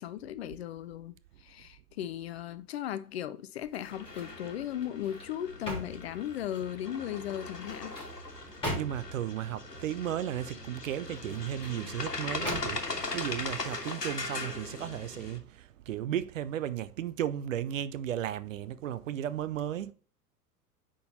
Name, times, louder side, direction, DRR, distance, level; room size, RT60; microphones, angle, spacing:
voice 1, 0.0-8.0, left 11 dB, 45° left, 0.6 m, -37 dB
sound 1, 3.6-4.4 4.8-6.8 7.5-9.3 11.0-11.8 12.4-13.0 13.5-13.7, equal, 10° left, 3.4 m, -40 dB
sound 2, 3.9-15.4, left 3 dB, 85° left, 1.4 m, -40 dB
voice 2, 8.3-19.9, right 11 dB, 55° right, 0.6 m, -35 dB
9.4 x 3.8 x 4.0 m
figure-of-eight pair, 95°, 47 cm